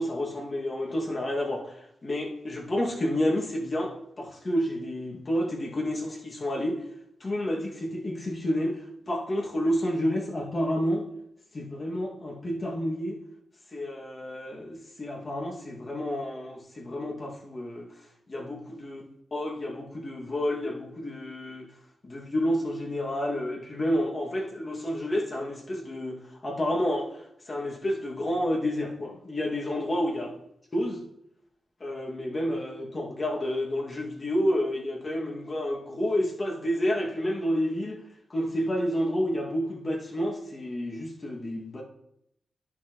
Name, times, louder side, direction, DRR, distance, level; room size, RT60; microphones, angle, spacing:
voice 1, 0.0-1.8 2.0-6.8 7.2-11.0 11.5-13.2 13.7-17.9 18.3-19.0 19.3-21.7 22.0-30.3 30.7-31.0 31.8-38.0 38.3-41.8, equal, 45° left, 2.2 m, -30 dB
11.0 x 6.0 x 3.1 m
cardioid pair, 50°, 0 cm